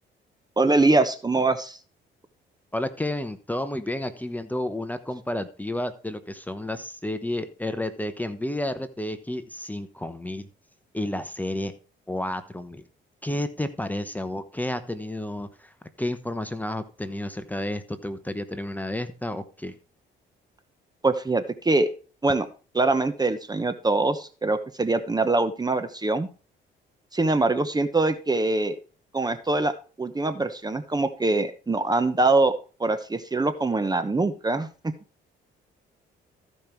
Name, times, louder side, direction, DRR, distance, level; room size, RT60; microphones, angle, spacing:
voice 1, 0.6-1.8 21.0-21.9 22.2-22.5 22.7-26.3 27.1-28.8 29.1-34.7, right 2 dB, 20° right, 10 dB, 1.0 m, -23 dB
voice 2, 2.7-10.5 10.9-11.7 12.1-12.8 13.2-19.7, left 1 dB, 10° left, 10 dB, 1.0 m, -31 dB
14.0 x 5.3 x 4.6 m, 0.37 s
cardioid pair, 90°, 20 cm